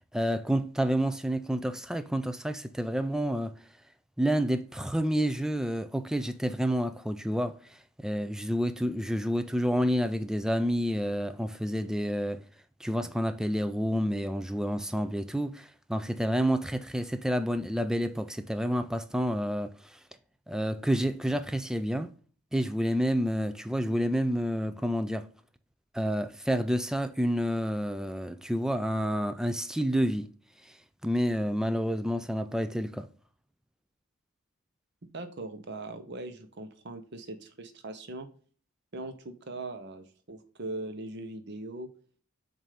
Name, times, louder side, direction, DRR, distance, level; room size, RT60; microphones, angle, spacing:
voice 1, 0.1-3.6 4.2-7.6 8.0-12.4 12.8-20.0 20.5-22.1 22.5-25.3 25.9-30.3 31.0-33.1, equal, 5° right, 0.3 m, -29 dB
voice 2, 35.1-38.3 38.9-41.9, right 2 dB, 50° right, 0.8 m, -40 dB
7.4 x 2.7 x 4.9 m
head